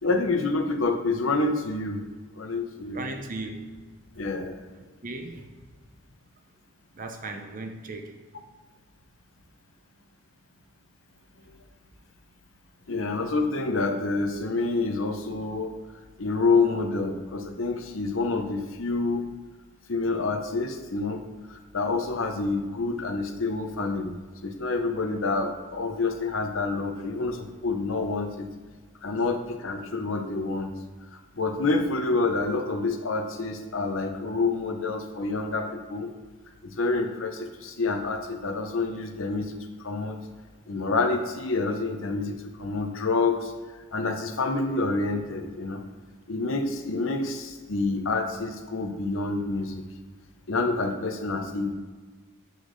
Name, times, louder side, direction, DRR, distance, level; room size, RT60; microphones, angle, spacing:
voice 1, 0.0-2.0 2.4-3.1 4.2-4.6 12.9-15.7 16.2-19.2 19.9-21.2 21.5-24.2 24.4-28.5 29.0-30.7 31.4-36.1 36.6-39.6 39.8-40.2 40.7-43.5 43.9-45.8 46.3-49.8 50.5-51.7, left 3 dB, 70° left, 5 dB, 0.8 m, -27 dB
voice 2, 2.9-3.6 5.0-5.4 7.0-8.1, right 2 dB, 40° right, 5 dB, 0.7 m, -36 dB
8.1 x 6.5 x 3.2 m, 1.4 s
head